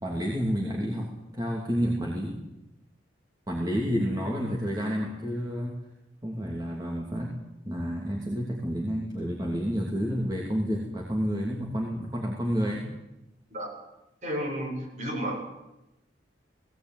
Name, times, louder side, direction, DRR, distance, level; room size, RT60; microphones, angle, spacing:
voice 1, 0.0-2.4 3.5-5.8 6.2-7.3 7.6-12.9, equal, 20° right, -2 dB, 2.9 m, -30 dB
voice 2, 14.2-15.4, equal, 40° right, -1 dB, 7.6 m, -32 dB
19.0 x 18.0 x 9.4 m, 0.93 s
head